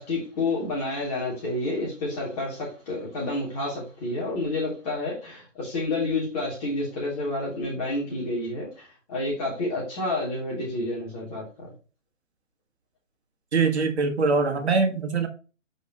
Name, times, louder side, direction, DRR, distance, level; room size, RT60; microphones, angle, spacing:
voice 1, 0.0-11.7, left 2 dB, 30° left, -4 dB, 3.3 m, -29 dB
voice 2, 13.5-15.3, right 4 dB, 60° right, 5 dB, 1.6 m, -23 dB
8.2 x 5.3 x 3.0 m, 0.34 s
figure-of-eight pair, 135°, 38 cm